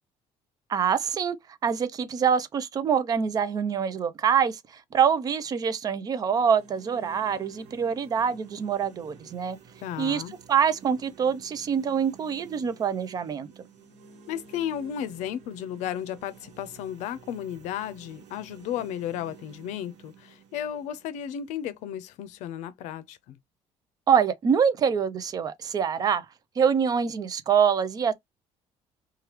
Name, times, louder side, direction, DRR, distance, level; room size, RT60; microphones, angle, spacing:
voice 1, 0.7-1.4 1.6-4.6 4.9-9.6 10.0-10.2 10.5-13.5 24.1-26.2 26.6-28.1, right 7 dB, 30° right, 0.4 m, -25 dB
sound 1, 6.2-22.2, right 6 dB, 70° right, 1.0 m, -51 dB
voice 2, 9.8-10.3 14.3-23.4, left 10 dB, 85° left, 0.5 m, -34 dB
3.0 x 2.3 x 3.2 m
cardioid pair, 155°, 12 cm